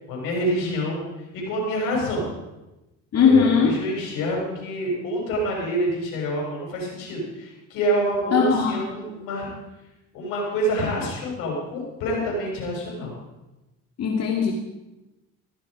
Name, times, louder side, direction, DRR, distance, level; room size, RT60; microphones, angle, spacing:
voice 1, 0.1-1.1 1.3-2.3 3.2-9.5 10.1-13.1, equal, 90° left, -2 dB, 6.9 m, -27 dB
voice 2, 3.1-3.7 8.3-8.8 14.0-14.5, left 6 dB, 50° left, 0 dB, 2.7 m, -19 dB
16.0 x 14.0 x 5.1 m, 1.0 s
cardioid pair, 95°, 32 cm